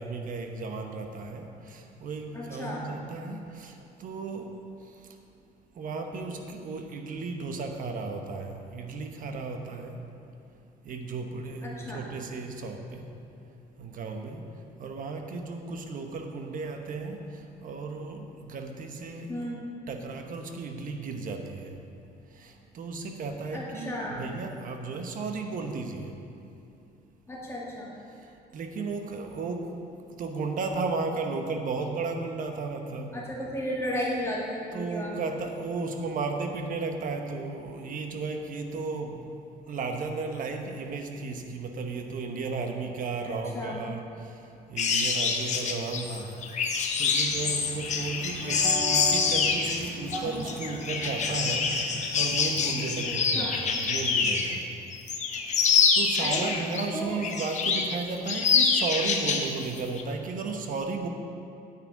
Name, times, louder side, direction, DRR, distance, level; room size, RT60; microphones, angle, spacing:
voice 1, 0.0-4.5 5.8-10.0 10.8-13.1 13.8-14.4 14.8-17.2 17.6-19.3 19.9-21.8 22.4-26.1 28.5-29.6 30.2-33.2 34.7-39.2 39.7-44.4 44.7-46.3 47.0-54.6 55.9-61.1, right 4 dB, 55° right, 4 dB, 1.1 m, -34 dB
voice 2, 2.3-2.8 11.6-12.0 19.3-19.6 23.5-24.2 27.3-27.9 33.1-35.2 43.3-43.8 53.1-53.6 56.2-56.6 56.9-57.2, left 1 dB, 15° left, -5 dB, 2.0 m, -34 dB
sound 1, 44.8-54.6 54.9-56.8 57.2-58.0 58.3-59.5 59.8-60.0, left 5 dB, 45° left, 1.0 m, -26 dB
sound 2, 47.3-52.9, right 1 dB, 30° right, 2.6 m, -39 dB
9.1 x 8.8 x 4.7 m, 2.8 s
cardioid pair, 110°, 17 cm